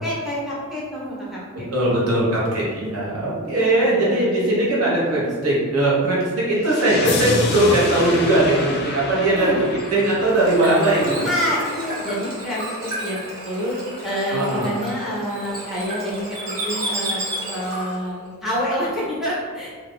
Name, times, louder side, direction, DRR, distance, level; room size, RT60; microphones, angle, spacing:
voice 1, 0.0-1.4 1.8-2.5 3.6-4.4 9.3-9.6 11.2-13.2 13.4-13.8 14.0-17.2 17.5-19.8, equal, ahead, -8 dB, 0.7 m, -27 dB
voice 2, 1.7-9.5 9.9-11.3 14.3-14.6, right 1 dB, 80° right, -6 dB, 1.1 m, -19 dB
sound 1, 6.6-11.6, left 2 dB, 45° left, 0.4 m, -28 dB
Bird / Water, 9.6-18.1, right 1 dB, 40° right, 0.9 m, -32 dB
2.5 x 2.3 x 3.5 m, 1.5 s
head